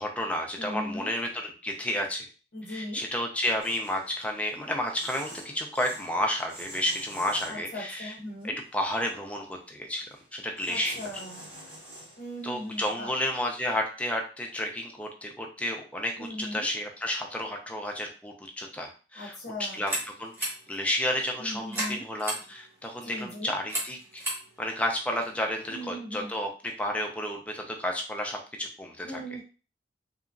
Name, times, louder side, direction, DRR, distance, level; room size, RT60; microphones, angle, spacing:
voice 1, 0.0-2.3 2.7-8.1 8.4-10.0 10.3-11.0 12.4-19.4 19.7-19.9 20.2-24.2 24.6-29.2, left 1 dB, 5° left, 2 dB, 0.4 m, -31 dB
voice 2, 0.6-1.1 2.5-3.0 7.5-8.6 10.7-11.5 12.2-13.1 16.2-16.7 19.1-19.8 21.4-22.0 23.0-23.5 25.7-26.3 29.0-29.4, equal, 50° left, -3 dB, 0.7 m, -38 dB
sound 1, 3.6-8.0 8.4-9.0 10.0-10.3 10.6-12.9, right 1 dB, 80° right, 1.5 m, -47 dB
sound 2, 19.6-25.9, right 1 dB, 10° right, 0.9 m, -38 dB
2.9 x 2.4 x 2.4 m, 0.36 s
head